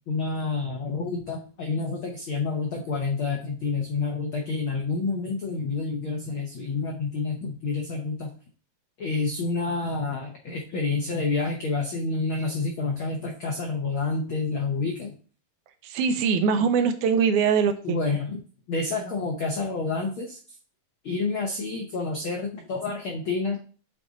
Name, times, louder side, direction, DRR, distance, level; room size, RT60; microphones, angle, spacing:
voice 1, 0.1-8.3 9.0-15.1 17.8-18.4 18.7-20.6 21.0-23.6, left 3 dB, 80° left, 1 dB, 1.1 m, -28 dB
voice 2, 15.8-18.0, right 6 dB, 80° right, 9 dB, 2.0 m, -22 dB
8.4 x 3.8 x 3.9 m, 0.40 s
omnidirectional pair, 3.6 m